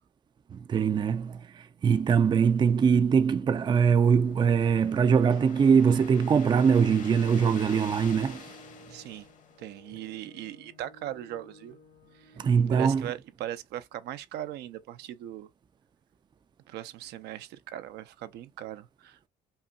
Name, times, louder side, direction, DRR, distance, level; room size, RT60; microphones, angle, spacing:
voice 1, 0.5-8.5 12.4-13.1, right 6 dB, 25° right, 0.4 m, -23 dB
Organ, 2.3-13.3, equal, 90° left, 2.2 m, -55 dB
sound 1, 3.7-10.0, left 7 dB, 50° left, 1.1 m, -48 dB
voice 2, 8.9-9.3 9.6-11.8 12.7-15.5 16.7-19.3, right 12 dB, 80° right, 0.6 m, -39 dB
5.5 x 2.2 x 2.4 m
cardioid pair, 110°, 17 cm